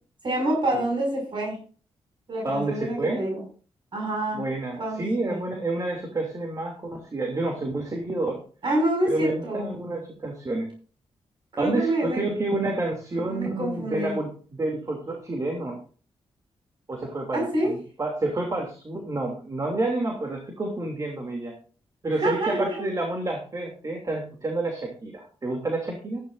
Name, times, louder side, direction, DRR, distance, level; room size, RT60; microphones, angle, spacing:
voice 1, 0.2-1.6 2.3-3.4 3.9-4.5 4.8-5.4 8.6-9.7 11.5-12.2 13.1-14.2 17.3-17.8 22.1-22.9, right 1 dB, 55° right, -1 dB, 6.3 m, -27 dB
voice 2, 2.4-3.2 4.3-8.4 9.0-10.7 11.6-15.8 16.9-21.6 22.0-26.2, right 2 dB, 35° right, 1 dB, 2.9 m, -29 dB
14.5 x 11.5 x 2.7 m, 0.40 s
cardioid pair, 85°, 10 cm